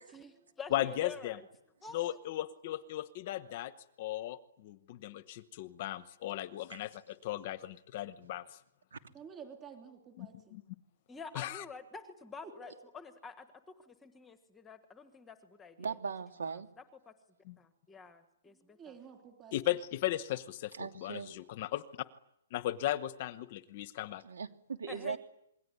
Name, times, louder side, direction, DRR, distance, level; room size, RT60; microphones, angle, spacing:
voice 1, 0.1-1.5 1.8-2.2 11.1-15.9 16.5-16.6 17.1-17.2 17.6-18.9 24.9-25.2, left 5 dB, 5° left, 9 dB, 1.3 m, -48 dB
voice 2, 0.7-1.4 1.9-3.7 4.0-8.6 10.2-10.6 11.3-11.6 17.4-17.5 19.5-21.8 22.5-24.2, left 14 dB, 25° left, 14 dB, 1.0 m, -36 dB
voice 3, 9.1-10.6 12.6-12.7 18.5-19.5, right 7 dB, 10° right, 4 dB, 3.2 m, -51 dB
voice 4, 15.8-16.7 20.8-21.3 24.2-25.2, right 6 dB, 75° right, 6 dB, 3.0 m, -39 dB
27.5 x 22.0 x 9.7 m, 0.79 s
hypercardioid pair, 180°, 0 cm